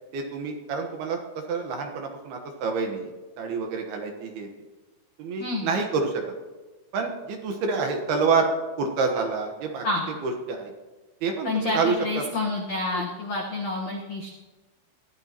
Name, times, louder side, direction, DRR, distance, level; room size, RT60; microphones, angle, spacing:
voice 1, 0.1-1.2 1.5-3.1 3.4-4.5 5.2-6.2 6.9-8.5 8.8-9.8 10.2-10.7 11.2-12.2 12.9-13.0, right 4 dB, 65° right, 3 dB, 2.8 m, -27 dB
voice 2, 5.4-5.7 9.8-10.1 11.4-14.3, left 2 dB, 85° left, -1 dB, 1.5 m, -28 dB
21.5 x 14.5 x 3.0 m, 1.2 s
omnidirectional pair, 5.6 m